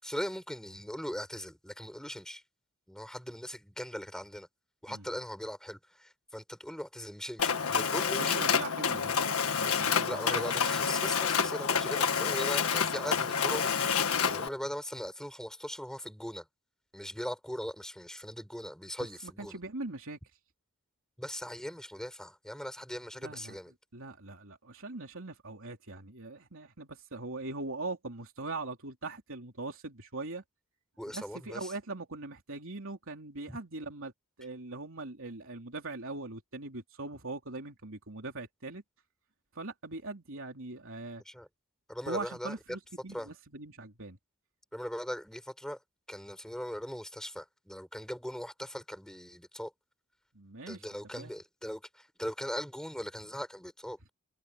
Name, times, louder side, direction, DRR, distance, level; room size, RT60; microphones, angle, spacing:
voice 1, 0.0-2.4 2.9-4.5 4.8-8.4 10.0-13.7 14.2-16.5 16.9-19.6 21.2-23.7 31.0-31.7 33.5-33.6 41.2-41.5 41.9-42.5 43.1-43.3 44.7-45.8 46.1-49.7 50.7-54.0, equal, 5° left, 6.1 m, -40 dB
Mechanisms, 7.4-14.5, left 6 dB, 70° left, 1.7 m, -28 dB
voice 2, 8.2-9.2 9.5-10.4 19.2-20.2 23.2-23.5 23.9-30.4 31.1-34.1 34.4-38.8 39.6-41.2 42.1-44.2 50.3-50.8 51.1-51.3, right 3 dB, 60° right, 3.6 m, -41 dB
head